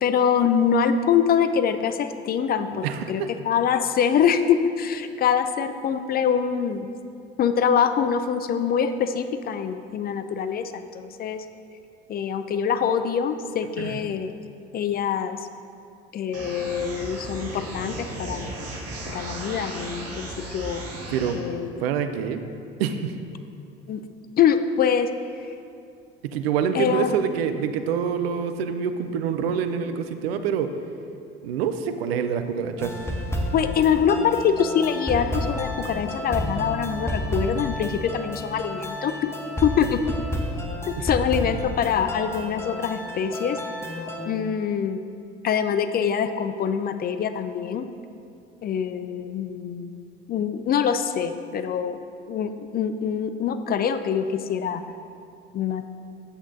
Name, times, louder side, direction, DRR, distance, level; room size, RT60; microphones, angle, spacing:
voice 1, 0.0-6.9 7.4-11.4 12.1-14.3 14.7-15.5 16.1-18.5 19.1-20.8 21.3-21.7 23.9-24.0 24.4-25.5 26.7-27.1 33.5-39.3 39.6-40.1 40.9-43.6 44.3-45.0 45.4-47.9 48.6-49.9 50.3-52.0 52.3-54.8 55.5-55.8, left 7 dB, 30° left, 10 dB, 0.4 m, -24 dB
voice 2, 2.7-3.3 13.8-14.0 21.1-21.4 21.8-22.4 22.8-23.2 26.2-30.7 31.4-32.9 41.0-41.1, right 7 dB, 70° right, 9 dB, 0.5 m, -26 dB
sound 1, 16.3-21.3, right 1 dB, 50° right, 1.4 m, -35 dB
sound 2, 32.8-44.2, equal, 10° left, 0.9 m, -31 dB
9.7 x 8.0 x 2.6 m, 2.5 s
figure-of-eight pair, 60°, 31 cm